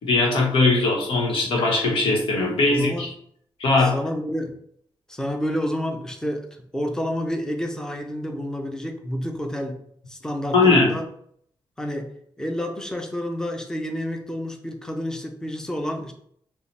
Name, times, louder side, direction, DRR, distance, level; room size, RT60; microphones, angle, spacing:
voice 1, 0.0-3.1 3.6-3.9 10.5-11.0, left 3 dB, 85° left, -1 dB, 1.2 m, -20 dB
voice 2, 2.7-3.1 3.8-4.6 5.1-9.8 10.1-11.0 11.8-16.1, equal, 5° left, 4 dB, 0.6 m, -29 dB
5.5 x 2.4 x 3.3 m, 0.66 s
wide cardioid pair, 145°, 9 cm